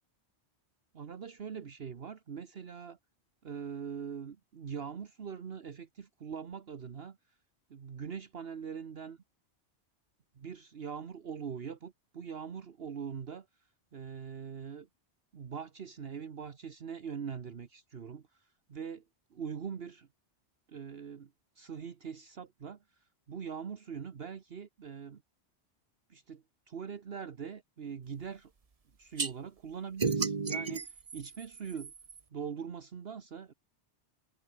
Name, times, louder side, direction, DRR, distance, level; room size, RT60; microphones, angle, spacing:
voice 1, 0.9-3.0 3.4-7.2 7.7-9.2 10.3-13.5 13.9-14.9 15.3-19.0 19.3-20.1 20.7-25.2 26.1-28.5 29.0-31.9 32.3-33.5, right 7 dB, 60° right, 1.3 m, -42 dB
sound 1, 29.2-29.3 30.0-32.2, right 4 dB, 35° right, 1.1 m, -33 dB
omnidirectional pair, 1.2 m